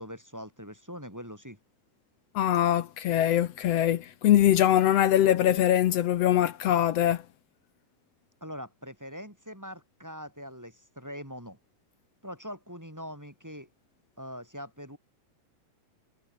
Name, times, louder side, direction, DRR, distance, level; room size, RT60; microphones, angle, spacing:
voice 1, 0.0-1.6 8.4-11.6 12.2-13.7 14.2-15.0, equal, 5° right, 3.8 m, -42 dB
voice 2, 2.3-7.2, left 11 dB, 70° left, 1.7 m, -23 dB
omnidirectional pair, 3.8 m